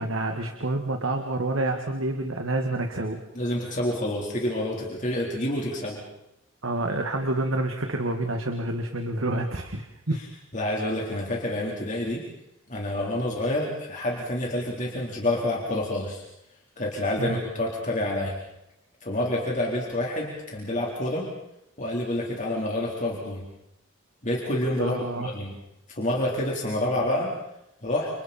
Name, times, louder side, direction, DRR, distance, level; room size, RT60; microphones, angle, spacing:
voice 1, 0.0-3.2 6.6-10.2 17.2-17.4 24.8-25.4, right 2 dB, 80° right, 4 dB, 2.0 m, -28 dB
voice 2, 3.4-6.0 10.5-12.2 12.7-16.2 16.8-18.4 19.0-21.3 21.8-23.4 24.2-25.6 25.9-27.3 27.8-28.1, left 1 dB, 40° left, -3 dB, 4.0 m, -28 dB
30.0 x 28.5 x 4.4 m, 0.86 s
head